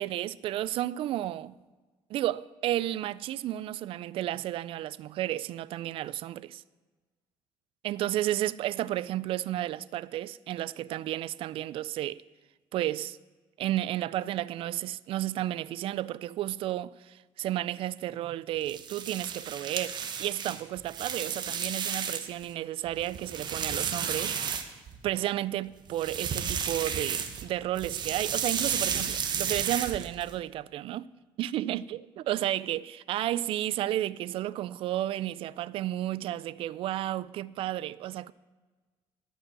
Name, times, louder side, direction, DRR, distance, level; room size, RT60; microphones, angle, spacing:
voice 1, 0.0-1.6 2.1-6.6 7.8-12.2 12.7-13.2 13.6-31.1 31.4-38.3, right 13 dB, 60° right, 0.4 m, -32 dB
sound 1, 18.6-22.4 22.9-25.1 25.9-27.5 27.8-30.3, right 7 dB, 45° right, 1.0 m, -33 dB
12.0 x 5.5 x 7.5 m
cardioid pair, 110°, 10 cm